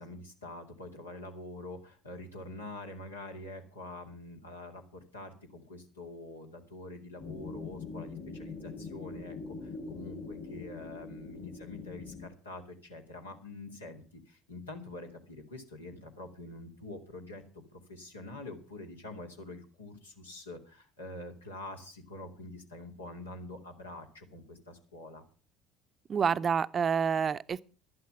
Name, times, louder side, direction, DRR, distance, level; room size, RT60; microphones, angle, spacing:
voice 1, 0.0-17.4 17.7-25.2, left 2 dB, 85° left, 2.5 m, -45 dB
sound 1, 7.2-12.3, left 4 dB, 45° left, 3.5 m, -43 dB
voice 2, 26.1-27.6, right 6 dB, 35° right, 0.6 m, -28 dB
12.0 x 11.5 x 5.9 m
figure-of-eight pair, 60°, 0 cm